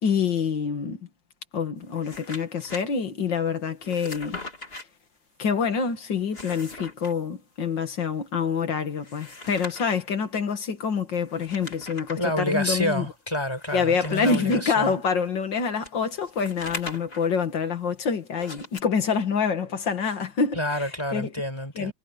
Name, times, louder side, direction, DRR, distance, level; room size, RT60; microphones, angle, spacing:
voice 1, 0.0-1.0 1.5-4.4 5.4-13.1 13.7-21.3 21.8-21.9, left 5 dB, 75° left, 2.6 m, -26 dB
sound 1, 1.8-2.8 3.8-4.8 6.2-7.1 8.9-10.0 11.2-12.2 12.8-12.9 13.6-15.0 15.8-17.3 18.3-18.8, left 2 dB, 30° left, 3.3 m, -40 dB
voice 2, 12.2-14.9 20.5-21.9, equal, 15° left, 5.2 m, -28 dB
omnidirectional pair, 2.0 m